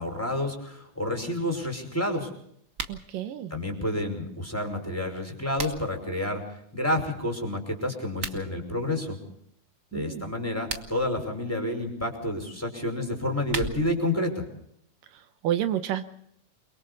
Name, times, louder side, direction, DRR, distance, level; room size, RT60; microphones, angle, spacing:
voice 1, 0.0-2.3 3.5-6.4 6.7-9.2 9.9-14.4, left 1 dB, 5° left, 3 dB, 5.1 m, -29 dB
sound 1, 2.7-3.0 5.1-6.0 8.1-8.4 10.5-11.1 13.1-14.1, right 5 dB, 60° right, 0.8 m, -36 dB
voice 2, 2.9-3.5 9.9-10.3 15.1-16.0, right 11 dB, 80° right, 9 dB, 2.7 m, -30 dB
29.5 x 23.0 x 4.1 m, 0.70 s
omnidirectional pair, 3.8 m